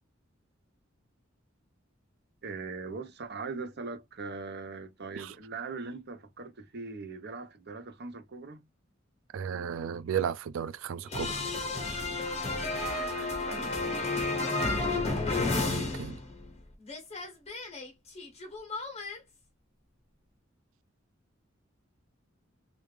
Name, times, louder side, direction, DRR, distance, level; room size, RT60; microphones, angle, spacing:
voice 1, 2.4-8.6 12.6-13.8, right 4 dB, 55° right, 0.8 m, -41 dB
voice 2, 9.3-11.4 15.7-16.2, right 8 dB, 75° right, 0.4 m, -34 dB
sound 1, 11.1-16.6 16.8-19.2, left 3 dB, 30° left, 1.1 m, -32 dB
3.4 x 2.5 x 3.2 m
head